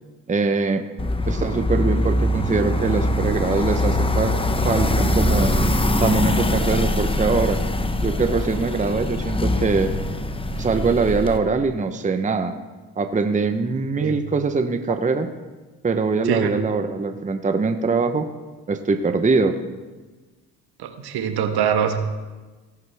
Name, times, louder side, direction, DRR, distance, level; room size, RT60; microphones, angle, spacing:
voice 1, 0.3-0.8 1.3-4.4 4.6-5.5 6.0-7.6 8.0-9.9 10.6-12.5 13.0-15.3 15.8-18.3 18.7-19.6, right 4 dB, 20° right, 7 dB, 0.9 m, -22 dB
sound 1, 1.0-11.4, left 1 dB, 15° left, 0.9 m, -22 dB
voice 2, 20.8-22.0, right 8 dB, 60° right, 7 dB, 1.5 m, -23 dB
17.0 x 10.5 x 3.5 m, 1.3 s
supercardioid pair, 80°, 42 cm